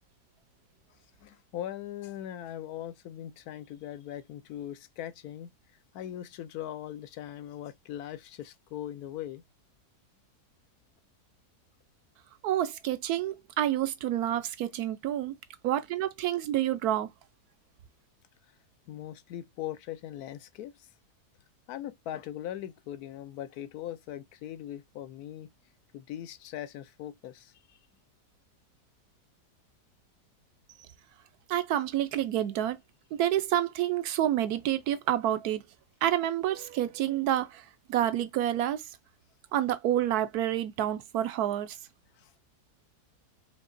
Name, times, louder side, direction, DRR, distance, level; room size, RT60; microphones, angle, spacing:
voice 1, 1.2-5.5 5.9-9.4 18.9-20.9 21.7-25.5 25.9-27.8 42.1-42.3, left 11 dB, 75° left, 1.1 m, -40 dB
voice 2, 12.4-15.4 15.6-17.1 31.5-32.8 33.2-35.6 36.0-38.8 39.5-41.8, right 12 dB, 75° right, 1.1 m, -28 dB
5.3 x 2.8 x 2.5 m
omnidirectional pair, 1.7 m